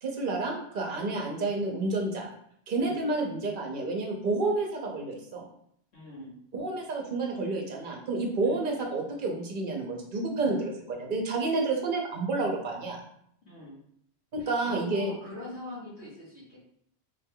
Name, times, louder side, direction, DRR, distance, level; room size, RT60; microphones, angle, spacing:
voice 1, 0.0-2.3 2.7-5.4 6.5-13.0 14.3-15.1, right 3 dB, 55° right, 1 dB, 0.8 m, -30 dB
voice 2, 5.9-6.4 8.4-8.6 10.4-10.6 13.4-13.8 14.4-16.7, left 1 dB, 80° left, -5 dB, 1.5 m, -43 dB
3.7 x 3.3 x 2.2 m, 0.69 s
omnidirectional pair, 1.1 m